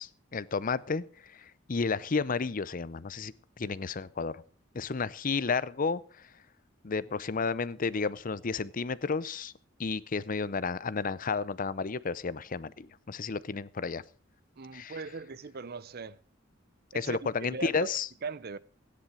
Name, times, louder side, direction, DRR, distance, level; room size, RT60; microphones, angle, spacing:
voice 1, 0.0-4.4 4.7-6.3 6.8-9.5 9.8-14.0 14.7-15.0 16.9-18.1, left 4 dB, 45° left, 0.6 m, -32 dB
voice 2, 14.6-16.2 16.9-17.2 17.5-17.9 18.2-18.6, right 4 dB, 55° right, 0.7 m, -39 dB
16.5 x 10.0 x 4.9 m
head